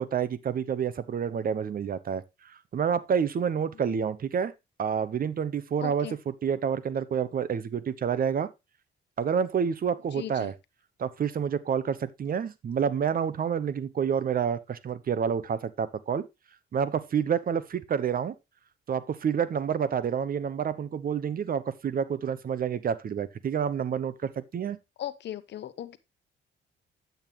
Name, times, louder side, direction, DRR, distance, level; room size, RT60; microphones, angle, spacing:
voice 1, 0.0-4.5 4.8-8.5 9.2-10.5 11.0-16.3 16.7-18.3 18.9-24.8, right 7 dB, 45° right, 0.9 m, -28 dB
voice 2, 5.8-6.2 10.1-10.5 25.0-26.0, left 11 dB, 60° left, 0.9 m, -37 dB
8.8 x 8.0 x 3.0 m
cardioid pair, 90°, 20 cm